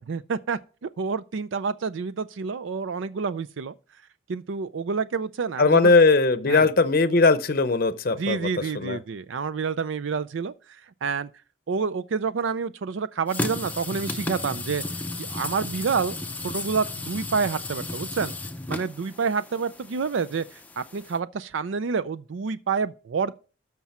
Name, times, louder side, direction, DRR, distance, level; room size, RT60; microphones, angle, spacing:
voice 1, 0.1-3.7 4.3-5.9 6.5-6.7 8.1-11.3 11.7-14.8 15.2-16.1 16.4-18.3 18.7-23.3, right 5 dB, 70° right, 0.4 m, -28 dB
voice 2, 5.6-8.5 8.7-9.0, left 3 dB, 45° left, 0.7 m, -19 dB
sound 1, 13.3-21.2, left 2 dB, 10° left, 0.5 m, -34 dB
13.0 x 6.0 x 4.3 m
head